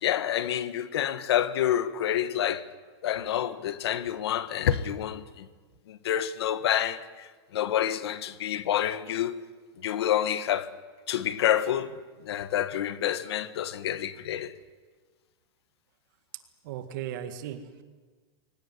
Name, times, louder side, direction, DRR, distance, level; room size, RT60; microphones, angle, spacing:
voice 1, 0.0-2.7 3.0-5.5 5.9-9.4 9.8-10.7 11.1-11.9 12.2-14.5, left 11 dB, 70° left, 1.4 m, -28 dB
voice 2, 16.6-17.8, right 10 dB, 45° right, 1.9 m, -37 dB
23.0 x 18.5 x 9.7 m
supercardioid pair, 170°, 14 cm